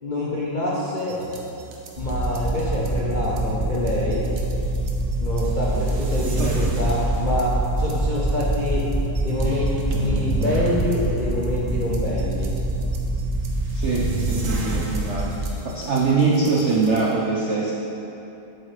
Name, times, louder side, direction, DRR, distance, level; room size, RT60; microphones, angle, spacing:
voice 1, 0.0-1.2 2.0-4.2 5.2-7.5 7.8-8.8 9.2-9.7 10.0-12.5, left 1 dB, 60° left, -6 dB, 0.5 m, -26 dB
sound 1, 1.0-17.1, right 2 dB, 55° right, 0.9 m, -33 dB
sound 2, 2.0-15.5, right 1 dB, 35° right, 1.7 m, -25 dB
voice 2, 13.7-15.3 15.6-17.7, right 4 dB, 80° right, -4 dB, 0.6 m, -23 dB
8.8 x 8.0 x 3.3 m, 2.9 s
omnidirectional pair, 2.3 m